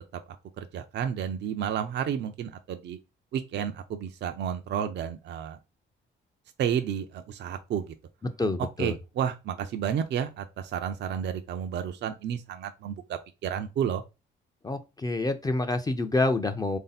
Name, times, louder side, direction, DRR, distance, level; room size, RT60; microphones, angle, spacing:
voice 1, 0.6-3.0 3.3-5.6 6.6-7.9 8.8-14.0, right 8 dB, 60° right, 0.5 m, -31 dB
voice 2, 8.2-9.0 14.6-16.8, left 2 dB, 20° left, 0.5 m, -27 dB
3.5 x 2.7 x 4.0 m
cardioid pair, 90°, 20 cm